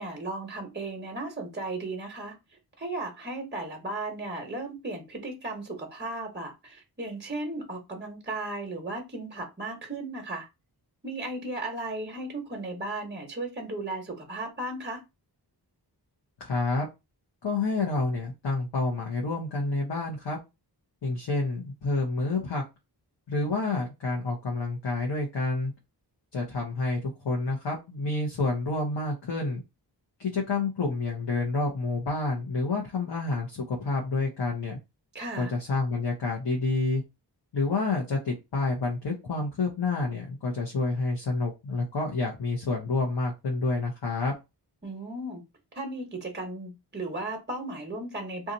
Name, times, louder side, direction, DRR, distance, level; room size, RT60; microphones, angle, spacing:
voice 1, 0.0-2.4 2.8-10.5 11.0-15.0 35.1-35.5 44.8-45.4 45.7-48.5, right 2 dB, 25° right, 1.0 m, -35 dB
voice 2, 16.4-16.9 17.4-20.4 21.0-22.6 23.3-25.7 26.3-29.6 30.2-34.8 35.4-37.0 37.5-44.3, left 3 dB, 80° left, 0.9 m, -28 dB
2.8 x 2.4 x 3.8 m
wide cardioid pair, 95°, 42 cm